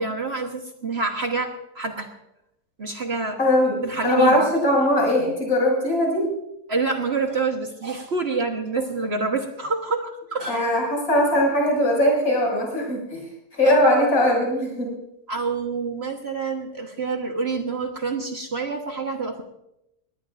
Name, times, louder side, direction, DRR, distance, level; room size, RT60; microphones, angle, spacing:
voice 1, 0.0-2.1 2.8-3.4 3.8-4.4 6.7-10.6 13.6-13.8 15.3-19.4, right 4 dB, 45° right, 3 dB, 1.4 m, -27 dB
voice 2, 3.4-6.3 10.5-13.2 13.5-14.9, left 1 dB, 60° left, -2 dB, 6.8 m, -20 dB
20.5 x 18.5 x 2.5 m, 0.83 s
omnidirectional pair, 1.7 m